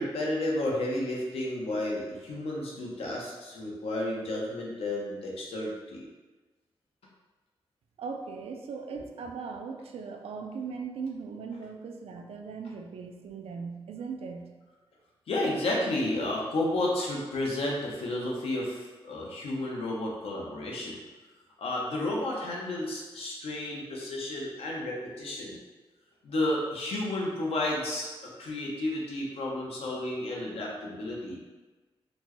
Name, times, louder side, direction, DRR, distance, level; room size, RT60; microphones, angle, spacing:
voice 1, 0.0-6.0 15.3-21.0 21.6-25.6 26.2-31.4, left 1 dB, 90° left, -3 dB, 0.8 m, -32 dB
voice 2, 8.0-14.5, right 5 dB, 90° right, 4 dB, 0.4 m, -39 dB
4.2 x 2.2 x 2.9 m, 1.2 s
wide cardioid pair, 150°, 10 cm